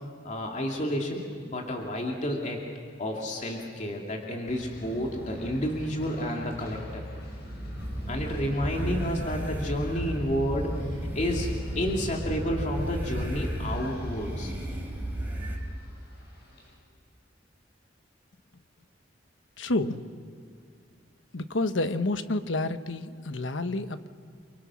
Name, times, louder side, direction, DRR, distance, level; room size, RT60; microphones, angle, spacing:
voice 1, 0.2-2.6 3.0-7.0 8.1-11.5 11.7-14.5, equal, 40° left, 0 dB, 2.5 m, -30 dB
sound 1, 4.5-16.7, left 1 dB, 60° left, 6.7 m, -40 dB
sound 2, 7.8-15.6, equal, 10° right, 3.3 m, -34 dB
voice 2, 19.6-20.0 21.3-24.1, left 2 dB, 85° left, 10 dB, 1.1 m, -29 dB
29.5 x 24.0 x 6.3 m, 2.3 s
head